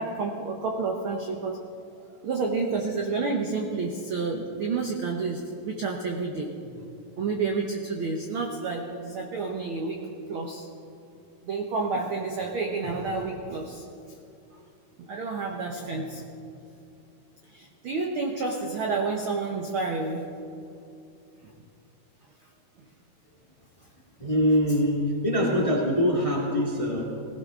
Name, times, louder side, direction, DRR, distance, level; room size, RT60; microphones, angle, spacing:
voice 1, 0.0-1.6 2.2-6.8 7.2-10.7 11.4-13.8 15.0-16.2 17.4-20.3, right 4 dB, 80° right, 2 dB, 1.1 m, -30 dB
voice 2, 24.2-27.0, equal, 15° left, -2 dB, 1.1 m, -23 dB
19.5 x 16.0 x 3.7 m, 2.7 s
omnidirectional pair, 3.9 m